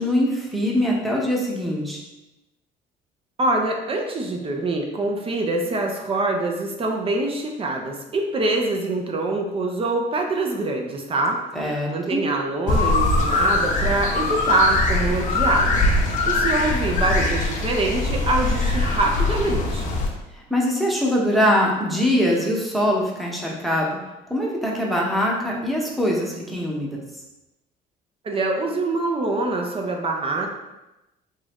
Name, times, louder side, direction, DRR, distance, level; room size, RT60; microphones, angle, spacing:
voice 1, 0.0-2.0 11.5-12.3 20.5-24.0 24.3-27.0, equal, ahead, -3 dB, 0.8 m, -22 dB
voice 2, 3.4-20.0 28.2-30.5, right 2 dB, 35° right, 1 dB, 0.6 m, -25 dB
sound 1, 12.7-20.1, left 2 dB, 50° left, 0.7 m, -22 dB
3.6 x 2.7 x 3.5 m, 0.98 s
cardioid pair, 110°, 17 cm